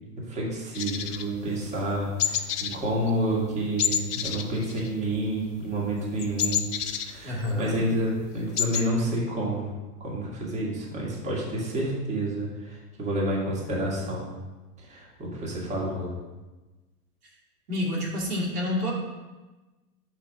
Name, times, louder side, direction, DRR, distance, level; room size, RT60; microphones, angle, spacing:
voice 1, 0.2-6.7 7.0-9.7 10.0-14.3 14.8-16.1, right 1 dB, 15° right, -4 dB, 1.8 m, -29 dB
sound 1, 0.8-1.9 2.2-2.8 3.1-3.3 3.8-5.3 5.6-7.7 8.1-8.2 8.3-8.9, left 9 dB, 85° left, 0.7 m, -29 dB
voice 2, 7.2-7.8 17.7-18.9, left 1 dB, 80° right, -3 dB, 2.4 m, -28 dB
5.7 x 4.1 x 6.0 m, 1.2 s
hypercardioid pair, 115°, 46 cm